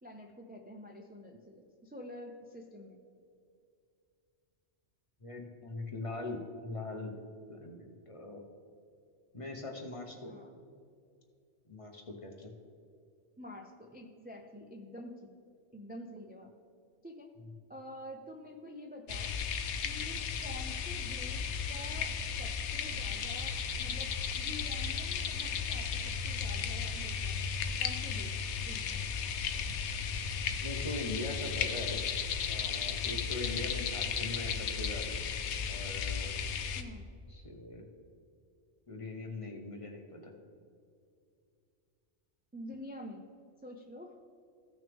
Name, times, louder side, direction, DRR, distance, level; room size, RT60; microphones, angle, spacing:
voice 1, 0.0-3.0 10.2-10.5 13.4-15.3 15.7-16.5 17.0-17.3 17.7-19.3 19.8-27.4 27.8-29.1 36.8-37.0 42.5-43.2 43.6-44.1, left 1 dB, 15° right, 1 dB, 0.4 m, -48 dB
voice 2, 5.2-7.1 7.5-8.4 9.3-10.4 11.7-12.5 30.6-32.0 32.4-35.2 35.7-36.3 37.3-37.9 38.9-40.3, left 2 dB, 30° left, 2 dB, 0.9 m, -41 dB
sound 1, 19.1-36.8, left 6 dB, 75° left, 0.9 m, -35 dB
15.5 x 6.1 x 3.5 m, 2.4 s
omnidirectional pair, 1.2 m